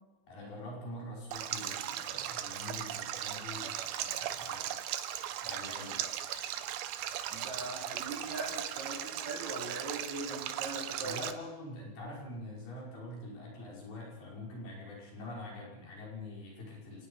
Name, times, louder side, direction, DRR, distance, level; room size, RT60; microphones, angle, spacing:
voice 1, 0.3-4.7 5.4-6.0 11.0-17.1, left 1 dB, 80° left, -3 dB, 7.5 m, -45 dB
Stream, 1.3-11.3, right 11 dB, 90° right, 2.9 m, -38 dB
voice 2, 7.3-11.2, right 2 dB, 50° right, 1 dB, 3.9 m, -41 dB
26.5 x 19.5 x 5.6 m, 1.1 s
omnidirectional pair, 4.3 m